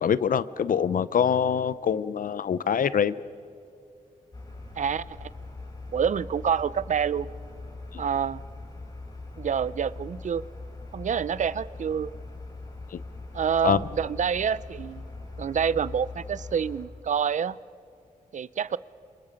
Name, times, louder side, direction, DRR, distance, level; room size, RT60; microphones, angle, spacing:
voice 1, 0.0-3.2 7.9-8.0 12.9-13.0 13.6-13.8, left 7 dB, 70° left, 16 dB, 0.7 m, -24 dB
sound 1, 4.3-16.9, left 3 dB, 25° left, 4.6 m, -41 dB
voice 2, 4.8-5.3 5.9-7.3 8.0-8.4 9.4-10.4 10.9-12.1 13.3-15.0 15.4-17.6 18.3-18.8, right 7 dB, 55° right, 19 dB, 0.5 m, -27 dB
30.0 x 27.0 x 5.2 m, 2.5 s
wide cardioid pair, 160°, 15 cm